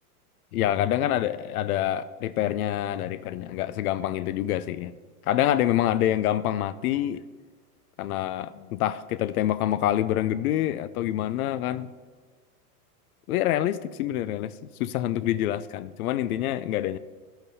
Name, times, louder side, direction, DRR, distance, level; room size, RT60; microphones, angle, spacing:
voice 1, 0.5-4.9 5.2-7.2 8.0-11.9 13.3-14.5 14.8-17.0, left 12 dB, 70° left, 16 dB, 0.5 m, -26 dB
14.0 x 11.0 x 2.7 m, 1.5 s
hypercardioid pair, 125°, 46 cm